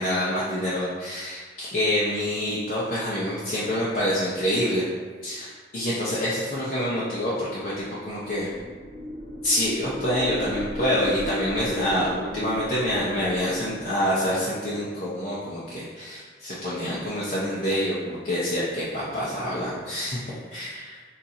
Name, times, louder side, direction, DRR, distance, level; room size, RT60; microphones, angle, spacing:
voice 1, 0.0-4.8 5.2-8.5 9.4-20.7, equal, 50° left, -9 dB, 0.8 m, -27 dB
sound 1, 8.1-14.2, left 1 dB, 45° right, 0.5 m, -36 dB
6.8 x 2.7 x 2.7 m, 1.5 s
head